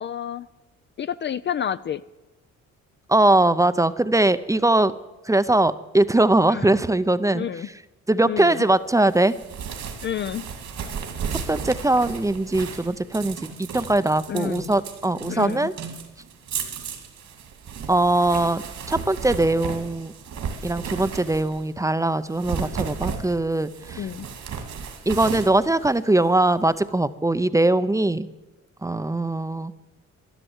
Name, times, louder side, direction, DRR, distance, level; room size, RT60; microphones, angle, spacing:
voice 1, 0.0-0.5 1.0-2.0 6.5-6.7 7.3-7.7 8.2-8.6 10.0-10.4 14.3-14.7 15.3-15.7 24.0-24.3, left 9 dB, 40° left, 14 dB, 0.4 m, -29 dB
voice 2, 3.1-4.9 5.3-7.5 8.1-9.3 11.5-15.7 17.9-20.1 20.6-24.1 25.1-28.3 28.8-29.7, right 2 dB, 10° right, 14 dB, 0.5 m, -21 dB
sound 1, 9.1-21.7 22.2-26.5, right 6 dB, 65° right, 2.4 m, -34 dB
12.0 x 11.5 x 8.0 m, 1.1 s
cardioid pair, 90°, 30 cm